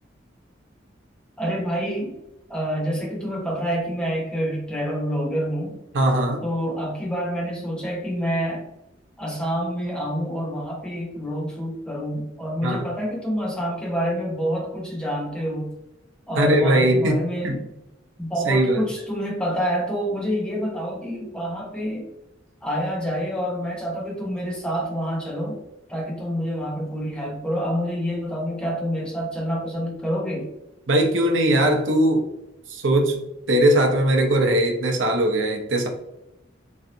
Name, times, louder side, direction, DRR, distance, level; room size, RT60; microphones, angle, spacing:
voice 1, 1.4-2.2 2.5-5.8 6.4-8.7 9.2-15.7 16.3-17.6 18.2-22.1 22.6-25.6 25.9-30.5, equal, 5° left, -3 dB, 0.7 m, -27 dB
voice 2, 5.9-6.4 12.6-12.8 16.4-17.6 18.4-18.8 30.9-32.2 32.7-33.2 33.5-35.9, right 1 dB, 90° right, 2 dB, 0.6 m, -20 dB
3.2 x 2.6 x 2.6 m, 0.91 s
head